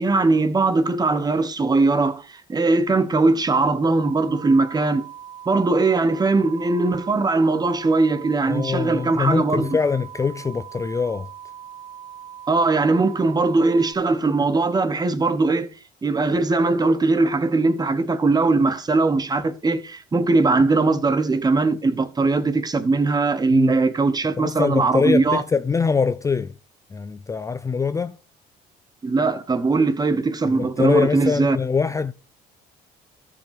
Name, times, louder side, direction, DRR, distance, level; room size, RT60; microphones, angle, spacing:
voice 1, 0.0-5.0 5.5-9.7 12.5-15.7 16.0-25.4 29.0-31.6, right 3 dB, 25° right, 1.2 m, -20 dB
sound 1, 3.9-13.9, right 9 dB, 45° right, 1.8 m, -41 dB
voice 2, 8.5-11.3 23.5-23.8 24.4-26.5 26.9-28.2 30.4-32.1, left 5 dB, 20° left, 0.4 m, -23 dB
13.5 x 5.8 x 4.9 m
cardioid pair, 110°, 17 cm